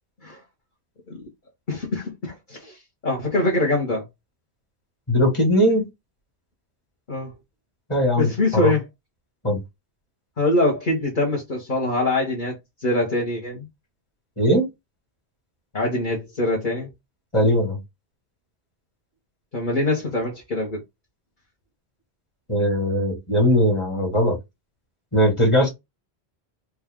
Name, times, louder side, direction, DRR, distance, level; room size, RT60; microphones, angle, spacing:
voice 1, 1.7-4.0 7.1-7.3 8.2-8.8 10.4-13.7 15.7-16.9 19.5-20.8, left 2 dB, 50° left, 1.2 m, -24 dB
voice 2, 5.1-5.9 7.9-8.7 9.4-9.6 14.4-14.7 17.3-17.8 22.5-24.4 25.1-25.7, equal, 25° left, 1.8 m, -19 dB
4.1 x 2.4 x 3.6 m
omnidirectional pair, 1.1 m